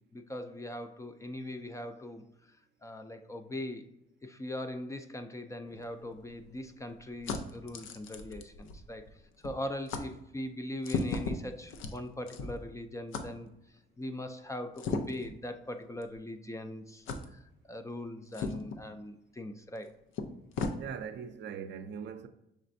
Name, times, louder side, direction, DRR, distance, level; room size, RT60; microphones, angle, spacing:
voice 1, 0.1-2.2 2.8-3.9 4.2-13.5 14.0-17.1 17.3-17.4 17.7-20.0, left 1 dB, 15° left, 0.4 m, -41 dB
sound 1, 5.7-9.2 9.4-9.6 9.9-10.1 10.8-12.7 13.1-13.3 14.8-15.3 16.0-16.1 17.1-17.3 18.3-18.8 19.8-19.9 20.1-20.8, left 4 dB, 85° left, 0.5 m, -37 dB
voice 2, 20.8-22.3, right 7 dB, 60° right, 0.5 m, -40 dB
6.0 x 3.3 x 2.6 m
cardioid pair, 90°, 20 cm